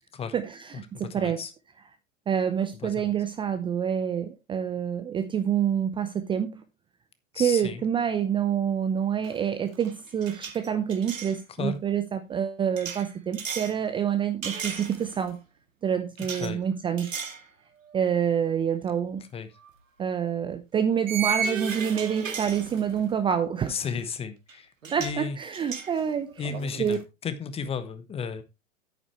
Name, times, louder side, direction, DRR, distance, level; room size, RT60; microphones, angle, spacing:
voice 1, 0.3-1.4 2.3-6.6 7.3-15.4 15.8-17.2 17.9-19.2 20.0-23.8 24.9-27.0, right 8 dB, 10° right, 0.7 m, -27 dB
voice 2, 0.9-1.5 2.8-3.1 7.3-7.8 11.6-11.8 16.4-16.6 19.3-19.5 23.7-24.7 25.0-25.4 26.4-28.4, left 6 dB, 15° left, 1.0 m, -33 dB
sound 1, 9.2-9.5 9.7-11.4 12.8-13.8 14.4-15.3 16.2-16.5 17.0-17.4 17.9-18.0 19.6-19.7 21.1-23.1 24.5-24.6 24.8-25.2 25.5-27.0, right 6 dB, 70° right, 2.1 m, -34 dB
10.0 x 9.3 x 3.2 m
figure-of-eight pair, 105°, 39 cm